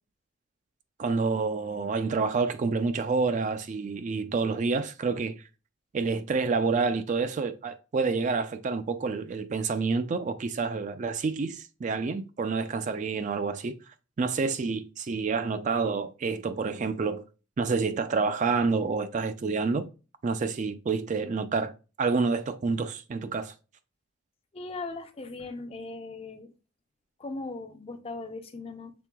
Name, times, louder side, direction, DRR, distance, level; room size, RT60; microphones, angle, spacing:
voice 1, 1.0-5.4 5.9-17.2 17.6-19.9 20.2-21.7 22.0-23.5, right 4 dB, 40° right, 0.3 m, -28 dB
voice 2, 24.5-26.5 27.2-28.9, left 3 dB, 30° left, 0.5 m, -38 dB
6.0 x 3.6 x 2.2 m
head